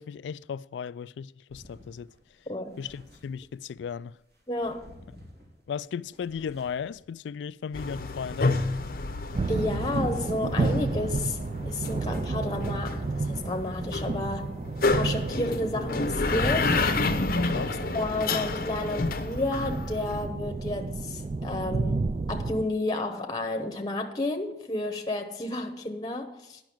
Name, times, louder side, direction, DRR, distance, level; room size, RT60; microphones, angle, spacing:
voice 1, 0.0-2.1 2.8-4.1 5.7-8.6 17.4-17.8, left 7 dB, 90° left, 0.3 m, -36 dB
sound 1, 1.5-3.9 4.3-7.2 7.7-10.7 11.2-21.3, left 1 dB, 65° right, 3.2 m, -54 dB
voice 2, 2.5-2.8 4.5-4.9 9.5-14.5 14.9-16.8 17.5-17.6 17.9-26.6, left 2 dB, 20° left, 0.9 m, -31 dB
sound 2, 7.7-20.3, left 3 dB, 55° left, 0.7 m, -30 dB
sound 3, 9.3-22.6, right 3 dB, 35° right, 0.3 m, -32 dB
10.5 x 5.9 x 7.7 m
head